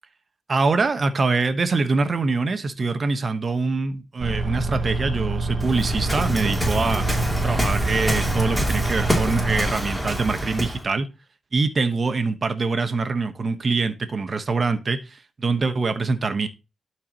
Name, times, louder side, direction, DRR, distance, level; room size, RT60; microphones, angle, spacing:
voice 1, 0.5-7.1 7.4-11.1 11.5-16.5, right 4 dB, 50° right, 1.1 m, -24 dB
sound 1, 4.2-9.7, right 2 dB, 65° right, 1.3 m, -26 dB
Waves surf, 5.6-10.8, equal, ahead, 3.1 m, -26 dB
12.5 x 4.6 x 3.0 m
cardioid pair, 75°, 0 cm